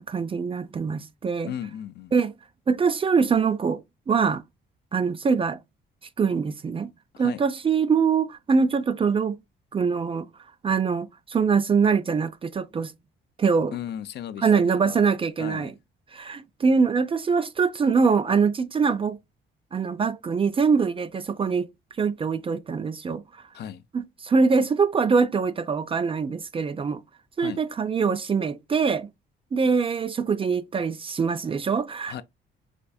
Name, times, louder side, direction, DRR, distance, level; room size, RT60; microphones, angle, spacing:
voice 1, 0.0-1.5 2.1-2.3 2.7-3.8 4.1-4.4 4.9-5.6 6.2-6.9 7.2-9.4 9.7-10.3 10.6-12.9 13.4-13.8 14.4-15.7 16.1-19.2 19.7-21.7 22.0-23.2 23.9-27.0 27.4-29.1 29.5-32.2, right 5 dB, 30° right, 0.3 m, -23 dB
voice 2, 1.4-2.1 7.1-7.4 13.7-15.0 15.4-15.8 23.5-23.8 27.4-27.6 32.1-32.2, left 10 dB, 60° left, 0.4 m, -36 dB
4.4 x 2.6 x 2.2 m
cardioid pair, 90°, 20 cm